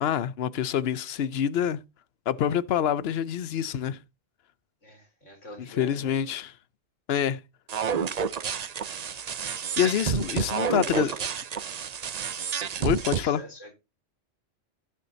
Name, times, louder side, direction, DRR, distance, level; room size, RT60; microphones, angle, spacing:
voice 1, 0.0-1.8 2.3-4.0 5.8-6.5 7.1-7.4 9.8-11.1 12.8-13.4, left 9 dB, 60° left, 0.9 m, -26 dB
voice 2, 4.8-6.2 10.4-11.3 13.0-13.7, equal, 80° left, 4.0 m, -44 dB
sound 1, 7.7-13.2, right 7 dB, 45° right, 0.5 m, -30 dB
16.0 x 6.3 x 2.7 m
omnidirectional pair, 1.2 m